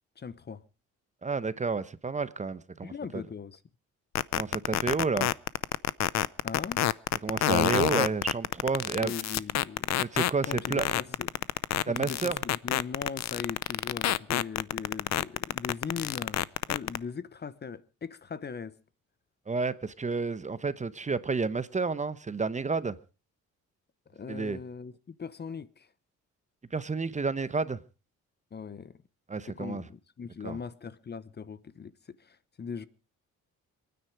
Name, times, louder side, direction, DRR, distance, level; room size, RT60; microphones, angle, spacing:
voice 1, 0.2-0.6 2.8-3.6 6.4-6.8 9.0-9.9 10.4-11.5 11.9-18.8 24.1-25.9 28.5-28.9 29.5-32.9, left 6 dB, 35° left, 0.9 m, -40 dB
voice 2, 1.2-3.2 4.4-5.3 7.2-9.1 10.0-10.9 11.9-12.4 19.5-23.0 24.3-24.6 26.7-27.8 29.3-29.8 30.4-30.6, right 4 dB, 25° right, 0.9 m, -30 dB
sound 1, 4.2-17.0, left 13 dB, 60° left, 0.7 m, -27 dB
26.5 x 9.6 x 4.7 m
cardioid pair, 90°, 30 cm